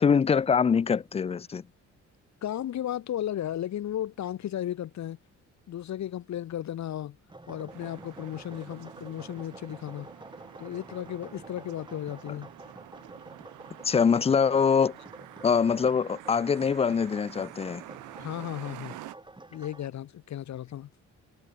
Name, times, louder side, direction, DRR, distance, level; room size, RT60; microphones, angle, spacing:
voice 1, 0.0-1.6 13.8-15.0 15.4-17.8, left 6 dB, 20° left, 0.4 m, -24 dB
voice 2, 2.4-5.2 5.7-7.2 7.5-10.1 10.6-12.5 18.2-18.9 19.5-20.9, left 11 dB, 65° left, 1.6 m, -34 dB
sound 1, 7.3-19.9, right 2 dB, 15° right, 7.4 m, -48 dB
sound 2, 7.7-19.1, right 16 dB, 90° right, 1.8 m, -48 dB
cardioid pair, 90°, 30 cm